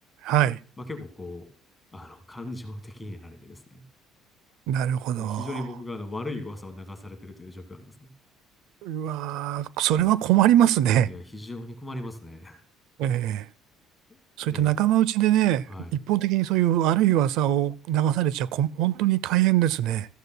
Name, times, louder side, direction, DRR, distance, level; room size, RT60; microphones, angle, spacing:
voice 1, 0.2-0.6 4.7-5.5 8.8-11.1 13.0-13.5 14.4-15.6 15.9-20.1, right 12 dB, 75° right, 0.4 m, -22 dB
voice 2, 0.8-1.5 1.9-3.8 5.1-8.1 11.0-12.6 14.1-14.7 15.7-15.9, left 2 dB, 10° left, 1.5 m, -38 dB
14.5 x 14.0 x 2.2 m
cardioid pair, 135°, 0 cm